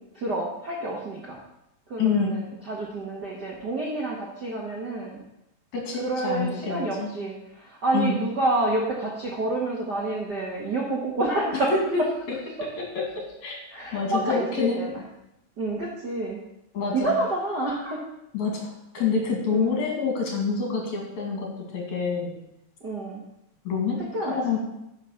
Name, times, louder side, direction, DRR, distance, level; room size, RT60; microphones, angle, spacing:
voice 1, 0.0-1.4 1.9-5.2 6.0-11.7 13.7-15.0 15.6-16.4 16.9-18.0 19.5-19.8 22.8-23.2 24.1-24.4, right 2 dB, 70° right, -3 dB, 0.9 m, -28 dB
voice 2, 2.0-2.4 5.7-7.1 7.9-8.1 11.5-12.0 12.9-13.6 13.9-14.8 16.7-17.2 18.3-22.3 23.6-24.6, left 5 dB, 55° left, 0 dB, 3.3 m, -27 dB
10.5 x 6.1 x 6.6 m, 0.86 s
omnidirectional pair, 4.4 m